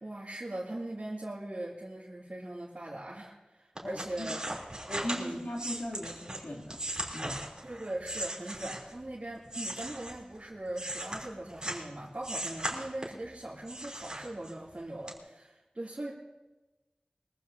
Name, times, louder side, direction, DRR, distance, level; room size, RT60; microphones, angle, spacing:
voice 1, 0.0-4.4 5.2-5.4 7.6-16.1, right 1 dB, 50° right, -6 dB, 2.7 m, -40 dB
sound 1, 3.7-9.0 9.4-11.9 12.2-13.3 13.7-14.7 15.1-15.2, right 1 dB, 30° right, 3.2 m, -38 dB
voice 2, 3.8-4.3 4.9-6.8 7.1-7.4, left 1 dB, 85° left, -3 dB, 2.8 m, -38 dB
22.5 x 14.5 x 2.7 m, 1.1 s
wide cardioid pair, 40°, 3 cm